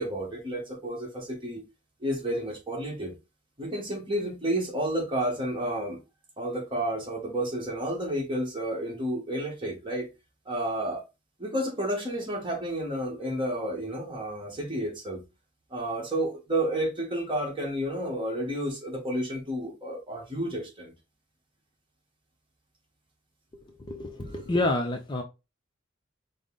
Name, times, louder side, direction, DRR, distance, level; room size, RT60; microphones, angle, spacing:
voice 1, 0.0-1.6 2.0-3.1 3.6-6.0 6.4-10.1 10.5-11.0 11.4-15.2 15.7-20.9, right 1 dB, 25° right, 1.2 m, -31 dB
voice 2, 23.5-25.2, left 2 dB, 25° left, 0.4 m, -29 dB
5.1 x 2.0 x 3.7 m
head